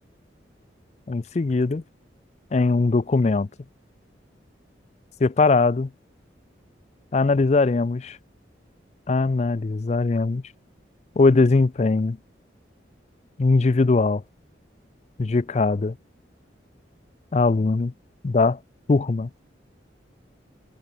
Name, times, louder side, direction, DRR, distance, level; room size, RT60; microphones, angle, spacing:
voice 1, 1.1-1.8 2.5-3.5 5.2-5.9 7.1-8.2 9.1-10.4 11.2-12.2 13.4-14.2 15.2-16.0 17.3-17.9 18.2-18.6 18.9-19.3, left 3 dB, 35° left, 0.4 m, -20 dB
head